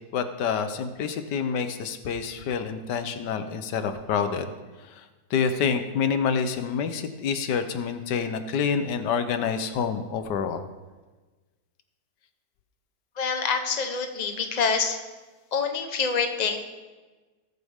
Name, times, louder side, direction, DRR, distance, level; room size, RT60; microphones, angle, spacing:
voice 1, 0.1-4.5 5.3-10.6, left 6 dB, 90° left, 9 dB, 1.5 m, -27 dB
voice 2, 13.2-15.0 15.5-16.6, left 5 dB, 30° left, 5 dB, 1.0 m, -26 dB
19.5 x 8.1 x 3.6 m, 1.3 s
omnidirectional pair, 1.8 m